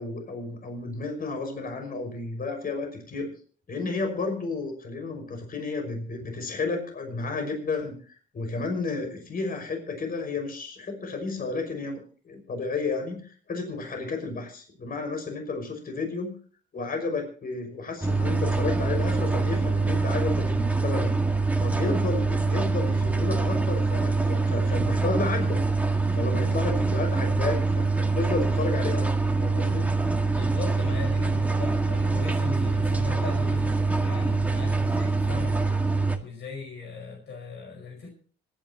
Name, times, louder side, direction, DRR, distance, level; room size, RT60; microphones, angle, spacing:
voice 1, 0.0-3.3 3.7-7.9 8.3-16.3 16.7-21.1 21.6-25.6 26.1-27.9 28.1-29.8, left 3 dB, 45° left, 4 dB, 5.8 m, -32 dB
sound 1, 18.0-36.2, right 3 dB, 5° right, 1.8 m, -24 dB
voice 2, 30.3-35.6 36.2-38.1, left 5 dB, 60° left, 2 dB, 5.4 m, -38 dB
26.0 x 11.0 x 3.0 m, 0.43 s
cardioid pair, 90°, 20 cm